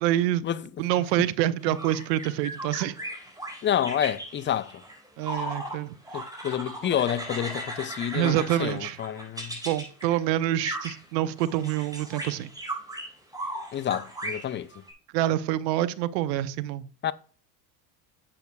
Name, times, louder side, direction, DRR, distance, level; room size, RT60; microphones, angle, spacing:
voice 1, 0.0-0.4 0.8-2.9 5.2-6.2 8.1-9.0 9.6-12.5 15.1-16.9, right 13 dB, 75° right, 0.9 m, -26 dB
sound 1, 1.6-5.8 6.1-10.2 10.6-11.0 11.4-14.9, right 1 dB, 5° right, 4.5 m, -37 dB
voice 2, 3.6-4.7 6.1-9.6 13.7-14.7 17.0-17.1, left 10 dB, 25° left, 0.5 m, -28 dB
10.5 x 8.4 x 2.3 m
hypercardioid pair, 85°, 50 cm